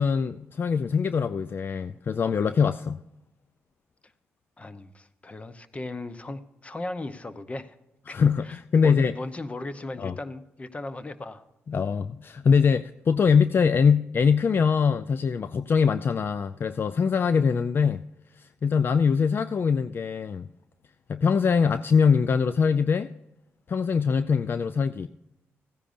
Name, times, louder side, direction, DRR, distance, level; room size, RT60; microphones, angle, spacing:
voice 1, 0.0-3.0 8.1-9.1 10.0-10.1 11.7-18.0 18.4-20.5 21.1-23.1 23.7-25.1, left 6 dB, 45° left, 14 dB, 0.3 m, -23 dB
voice 2, 4.6-7.8 8.1-11.4, left 2 dB, 25° left, 12 dB, 0.8 m, -37 dB
15.5 x 9.9 x 2.6 m, 0.92 s
cardioid pair, 80°, 5 cm